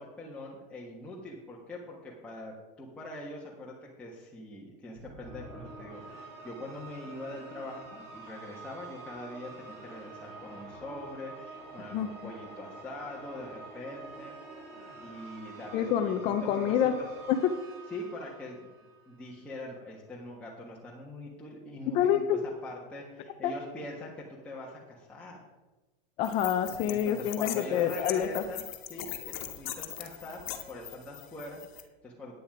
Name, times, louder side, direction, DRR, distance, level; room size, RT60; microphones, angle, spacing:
voice 1, 0.0-14.3 15.0-16.1 16.4-17.1 17.9-18.7 19.1-22.2 22.6-25.4 26.9-28.6 28.9-29.1 29.4-30.4 30.7-32.4, left 1 dB, 5° left, -5 dB, 1.3 m, -43 dB
sound 1, 5.0-19.3, right 3 dB, 50° right, 3.9 m, -47 dB
voice 2, 15.7-17.0 17.3-17.6 21.9-22.4 23.4-23.5 26.2-28.4, left 9 dB, 20° left, 8 dB, 0.3 m, -27 dB
sound 2, 26.2-31.8, left 12 dB, 55° left, 1.3 m, -41 dB
9.8 x 9.1 x 4.8 m, 1.1 s
supercardioid pair, 160°, 29 cm